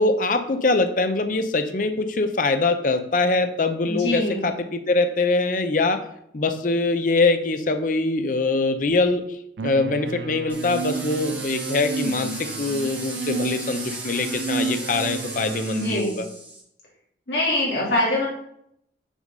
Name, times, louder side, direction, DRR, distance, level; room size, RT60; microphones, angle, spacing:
voice 1, 0.0-6.0 6.3-9.2 9.6-16.3, left 3 dB, 45° left, 8 dB, 0.6 m, -23 dB
voice 2, 3.9-4.5 15.7-16.2 17.3-18.3, left 1 dB, 65° left, -5 dB, 2.4 m, -24 dB
sound 1, 9.6-16.0, right 5 dB, 70° right, 0.4 m, -31 dB
sound 2, 10.5-16.6, right 2 dB, 10° right, 1.6 m, -36 dB
6.2 x 3.9 x 5.3 m, 0.74 s
head